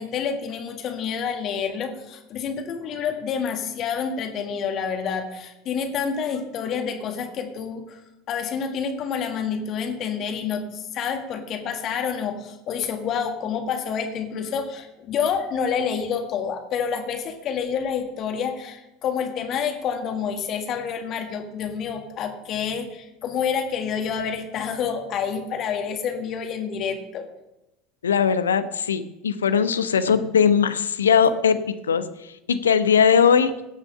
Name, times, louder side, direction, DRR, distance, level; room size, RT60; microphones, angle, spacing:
voice 1, 0.0-8.0 8.3-27.3, left 7 dB, 40° left, 4 dB, 1.8 m, -28 dB
voice 2, 28.0-33.5, left 7 dB, 75° left, 12 dB, 0.8 m, -20 dB
17.5 x 6.2 x 5.6 m, 0.92 s
figure-of-eight pair, 75°, 0 cm